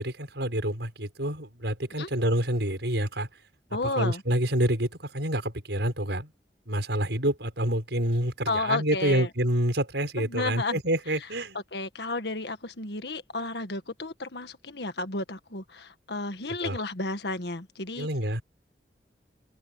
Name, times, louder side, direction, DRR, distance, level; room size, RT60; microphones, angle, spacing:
voice 1, 0.0-3.3 3.8-6.3 6.7-11.6 16.5-16.8 18.0-18.4, right 1 dB, 85° right, 6.4 m, -27 dB
voice 2, 3.7-4.2 8.5-9.3 10.2-10.8 11.7-18.1, left 2 dB, 75° left, 1.7 m, -32 dB
open air
head